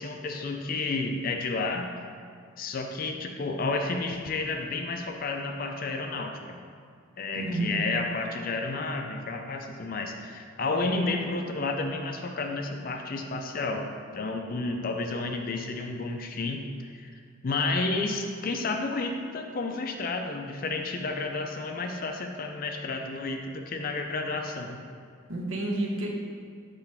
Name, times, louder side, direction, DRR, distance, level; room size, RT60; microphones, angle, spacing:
voice 1, 0.0-1.9 2.6-6.6 7.2-13.9 14.1-17.1 17.4-24.8, left 3 dB, 40° left, 4 dB, 0.4 m, -31 dB
voice 2, 7.3-7.8 25.3-26.1, right 2 dB, 70° right, -1 dB, 1.0 m, -30 dB
6.0 x 3.2 x 5.6 m, 2.2 s
head